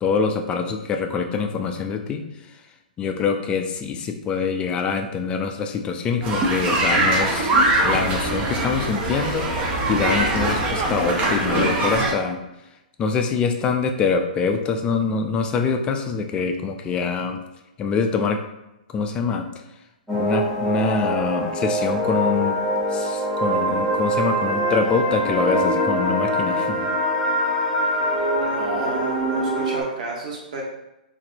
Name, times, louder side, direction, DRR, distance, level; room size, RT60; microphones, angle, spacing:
voice 1, 0.0-2.2 3.0-7.5 7.8-12.4 13.0-17.4 17.8-18.4 18.9-19.5 20.2-22.6 22.9-26.9, left 5 dB, 20° left, 5 dB, 0.4 m, -24 dB
sound 1, 6.2-12.1, right 2 dB, 25° right, 0.7 m, -22 dB
sound 2, 20.1-29.8, equal, ahead, 0.9 m, -23 dB
voice 2, 28.4-30.6, right 3 dB, 55° right, -2 dB, 1.0 m, -31 dB
3.9 x 2.6 x 2.6 m, 0.93 s
hypercardioid pair, 120°, 5 cm